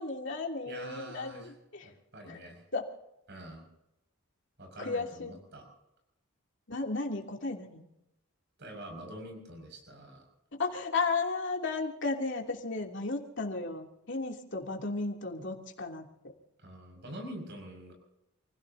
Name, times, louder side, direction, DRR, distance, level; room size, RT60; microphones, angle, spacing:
voice 1, 0.0-1.9 2.3-2.4 2.7-2.9 4.8-5.4 6.7-7.8 10.5-16.1, left 3 dB, 60° left, 1 dB, 2.9 m, -34 dB
voice 2, 0.7-1.5 1.8-2.6 3.3-3.6 4.6-5.6 8.6-10.3 16.6-17.9, right 1 dB, 55° right, 4 dB, 6.1 m, -45 dB
29.0 x 17.0 x 2.8 m, 0.87 s
head